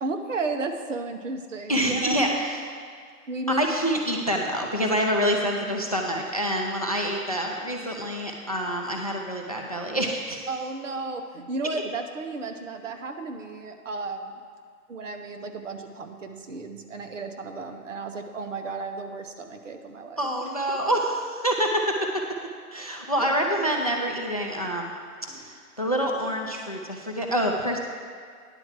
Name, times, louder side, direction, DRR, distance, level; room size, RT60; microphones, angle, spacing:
voice 1, 0.0-2.2 3.3-3.7 10.5-14.3 14.9-20.3 23.2-23.5 25.3-25.5, right 3 dB, 55° right, 6 dB, 1.0 m, -33 dB
voice 2, 1.7-2.7 3.6-10.5 20.2-22.0 22.7-24.9 25.4-27.8, equal, 30° left, 1 dB, 0.4 m, -26 dB
9.9 x 4.6 x 7.2 m, 2.1 s
figure-of-eight pair, 145°, 44 cm